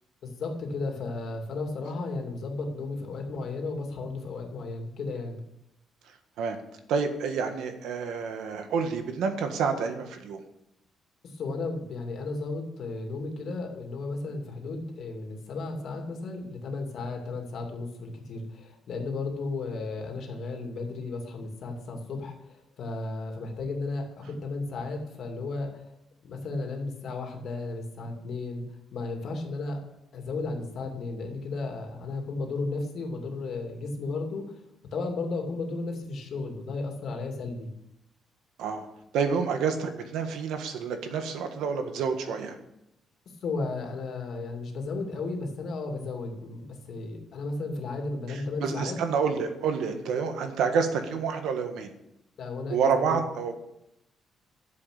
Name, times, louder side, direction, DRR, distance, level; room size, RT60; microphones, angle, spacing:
voice 1, 0.2-5.4 11.2-25.8 26.2-28.6 28.9-29.8 30.1-34.6 34.9-37.7 43.4-49.0 52.4-53.2, left 3 dB, 50° left, 2 dB, 2.5 m, -34 dB
voice 2, 6.9-10.4 38.6-38.9 39.1-42.5 48.3-51.9 52.7-53.5, right 6 dB, 85° right, 6 dB, 1.6 m, -28 dB
12.5 x 7.6 x 6.7 m, 0.82 s
cardioid pair, 180°, 0 cm